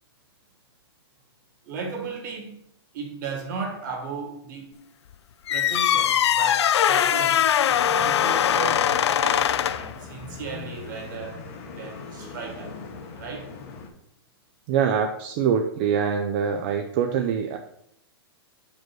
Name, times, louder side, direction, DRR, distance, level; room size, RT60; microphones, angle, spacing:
voice 1, 1.6-2.6 2.9-4.8 5.5-11.4 11.8-12.8 13.2-13.5, right 4 dB, 45° right, 1.8 m, -35 dB
sound 1, 5.5-9.9, left 10 dB, 85° left, 0.4 m, -21 dB
sound 2, 7.7-13.9, left 4 dB, 35° left, 0.9 m, -40 dB
voice 2, 14.7-17.6, right 7 dB, 30° right, 0.4 m, -24 dB
5.1 x 4.6 x 6.0 m
hypercardioid pair, 165°, 14 cm